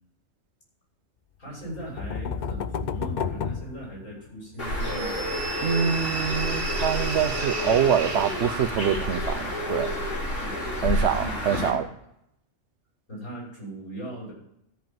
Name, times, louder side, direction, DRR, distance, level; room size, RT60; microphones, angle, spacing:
voice 1, 1.4-5.1 10.4-11.8 13.1-14.3, right 1 dB, 85° left, -4 dB, 6.3 m, -38 dB
sound 1, 1.6-4.5, left 6 dB, 50° left, 0.6 m, -32 dB
Bird, 4.6-11.7, left 1 dB, 70° left, 3.5 m, -29 dB
sound 2, 4.8-9.0, right 4 dB, 30° right, 0.8 m, -35 dB
voice 2, 5.6-9.9 10.8-11.9, right 8 dB, 60° right, 11 dB, 1.0 m, -25 dB
13.5 x 5.5 x 7.5 m, 0.79 s
omnidirectional pair, 1.3 m